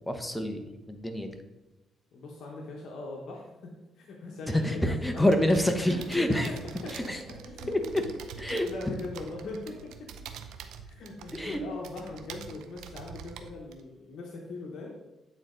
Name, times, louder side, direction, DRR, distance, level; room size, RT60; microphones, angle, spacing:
voice 1, 0.1-0.6 0.9-1.4 4.5-6.5 7.1-7.2 7.7-7.8 8.4-8.7 11.3-11.6, left 1 dB, 5° left, 5 dB, 0.9 m, -26 dB
voice 2, 2.1-6.0 6.3-6.6 6.8-7.2 7.4-8.0 8.4-10.3 10.8-14.9, left 2 dB, 70° left, -1 dB, 1.0 m, -40 dB
sound 1, 5.2-13.8, right 7 dB, 85° right, 0.5 m, -46 dB
8.7 x 4.0 x 3.8 m, 1.1 s
cardioid pair, 90°, 0 cm